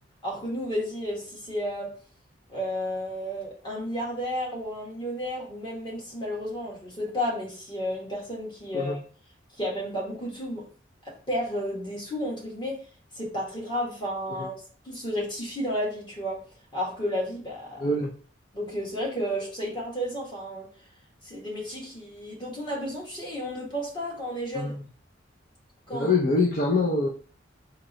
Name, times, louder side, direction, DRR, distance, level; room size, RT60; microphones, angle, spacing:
voice 1, 0.2-1.9 2.5-9.0 9.6-10.7 11.0-12.8 13.1-16.4 16.7-17.9 18.5-20.7 21.2-24.7 25.9-26.1, equal, 25° left, 1.5 m, -32 dB
voice 2, 17.8-18.1 24.5-24.8 25.9-27.1, left 3 dB, 50° left, 0.6 m, -24 dB
3.7 x 2.9 x 4.2 m
head